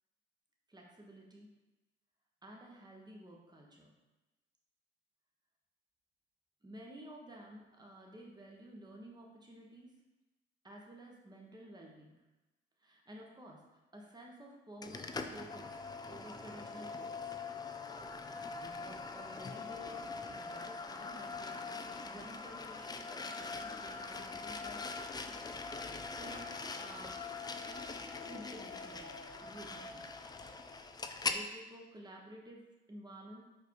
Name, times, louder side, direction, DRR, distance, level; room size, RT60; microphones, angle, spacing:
voice 1, 0.7-1.5 2.4-3.9 6.6-9.9 10.6-12.3 12.8-15.8 16.1-17.3 18.6-24.9 26.0-27.6 28.2-30.1 30.9-33.4, right 1 dB, 20° right, -1 dB, 1.4 m, -53 dB
sound 1, 14.8-31.4, left 4 dB, 20° left, 0.5 m, -42 dB
5.0 x 4.6 x 4.7 m, 1.1 s
cardioid pair, 90°, 20 cm